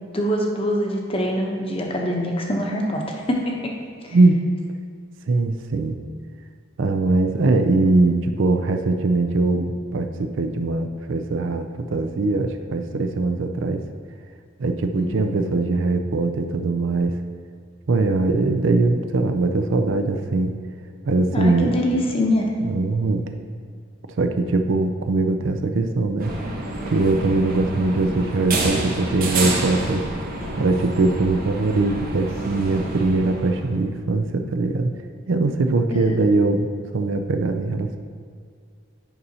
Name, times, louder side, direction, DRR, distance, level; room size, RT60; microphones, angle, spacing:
voice 1, 0.1-3.8 4.0-4.2 15.0-15.3 21.3-22.5 35.9-36.2, equal, 25° left, 0 dB, 0.8 m, -24 dB
voice 2, 4.1-4.4 5.3-6.0 6.8-13.8 14.6-17.2 17.9-20.6 21.0-21.7 22.6-23.3 24.2-26.3 26.9-30.0 30.6-34.9 35.3-36.7 36.9-38.0, right 3 dB, 65° right, 7 dB, 0.4 m, -21 dB
sound 1, 26.2-33.7, right 2 dB, 45° right, 1.0 m, -28 dB
9.4 x 5.5 x 2.8 m, 2.2 s
head